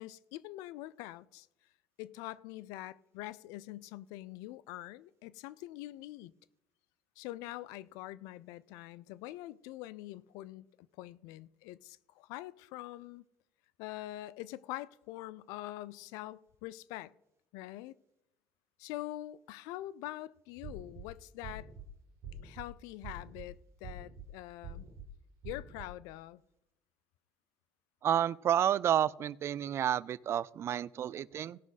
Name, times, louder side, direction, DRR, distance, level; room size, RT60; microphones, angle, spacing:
voice 1, 0.0-1.5 2.0-6.3 7.2-10.7 11.0-13.2 13.8-17.1 17.5-18.0 18.8-21.7 22.4-24.9 25.4-26.4, left 16 dB, 75° left, 0.4 m, -44 dB
sound 1, 20.6-21.0 21.4-21.8 22.2-22.6 23.0-23.5 23.8-24.3 24.6-25.1 25.4-25.9, right 3 dB, 65° right, 1.8 m, -45 dB
voice 2, 28.0-31.6, right 10 dB, 45° right, 0.3 m, -30 dB
17.5 x 5.9 x 4.1 m
supercardioid pair, 80°, 6 cm